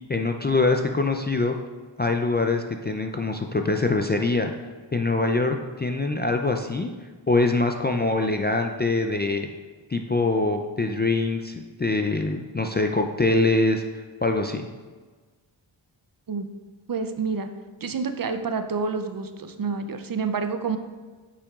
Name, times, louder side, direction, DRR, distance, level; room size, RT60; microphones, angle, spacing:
voice 1, 0.1-1.5 2.0-4.5 4.9-6.9 7.3-9.5 9.9-14.7, left 3 dB, 25° left, 4 dB, 0.3 m, -24 dB
voice 2, 16.9-17.5 17.8-20.8, right 5 dB, 45° right, 8 dB, 0.5 m, -28 dB
8.3 x 5.8 x 2.4 m, 1.4 s
wide cardioid pair, 90°, 47 cm